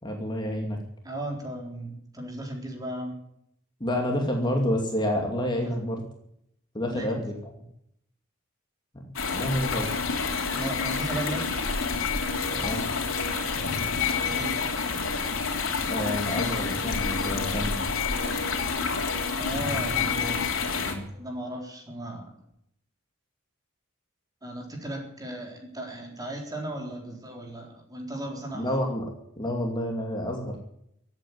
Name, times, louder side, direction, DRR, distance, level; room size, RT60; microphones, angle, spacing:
voice 1, 0.0-0.8 3.8-6.0 6.7-7.3 9.3-9.9 12.5-12.8 15.9-17.8 20.8-21.1 28.5-30.6, equal, 20° left, 1 dB, 2.5 m, -29 dB
voice 2, 1.0-3.2 5.6-5.8 6.9-7.2 10.5-11.5 14.3-14.6 19.4-20.5 21.1-22.4 24.4-28.7, right 1 dB, 20° right, 1 dB, 3.8 m, -36 dB
sound 1, 9.2-20.9, left 5 dB, 80° left, 3.1 m, -28 dB
15.5 x 9.1 x 9.5 m, 0.73 s
head